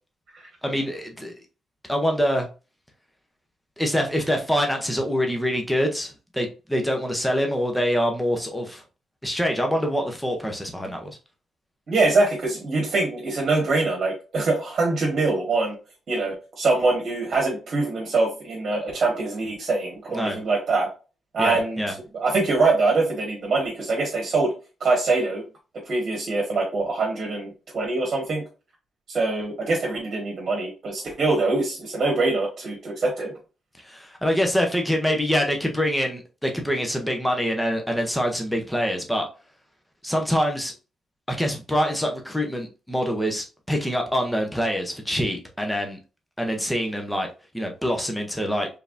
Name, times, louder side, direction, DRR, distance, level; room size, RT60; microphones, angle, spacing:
voice 1, 0.6-1.3 1.9-2.5 3.8-8.8 9.2-11.2 20.1-20.4 21.4-21.9 33.8-39.3 40.0-40.7 41.3-46.0 46.4-48.7, equal, 5° left, 0.7 m, -25 dB
voice 2, 11.9-15.8 16.1-20.9 21.3-24.5 24.8-25.4 25.8-28.4 29.1-33.3, right 3 dB, 40° right, 1.5 m, -24 dB
4.6 x 3.4 x 2.5 m
wide cardioid pair, 165°, 0 cm